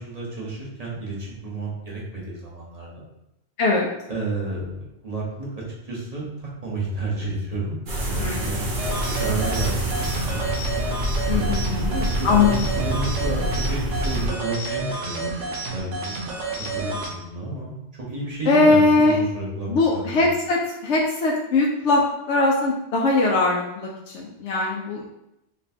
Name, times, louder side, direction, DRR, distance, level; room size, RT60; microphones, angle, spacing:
voice 1, 0.0-3.1 4.1-7.8 8.0-10.5 11.3-15.9 16.7-20.2, right 2 dB, 35° right, -5 dB, 1.1 m, -31 dB
voice 2, 3.6-3.9 8.2-8.5 11.3-12.6 18.5-19.2 19.7-22.0 22.3-23.9 24.1-25.0, left 3 dB, 75° left, -2 dB, 0.9 m, -20 dB
sound 1, 7.9-14.3, right 1 dB, 50° right, 0.9 m, -26 dB
sound 2, 8.8-17.1, right 3 dB, 85° right, 1.1 m, -30 dB
4.1 x 3.1 x 2.7 m, 0.86 s
omnidirectional pair, 1.2 m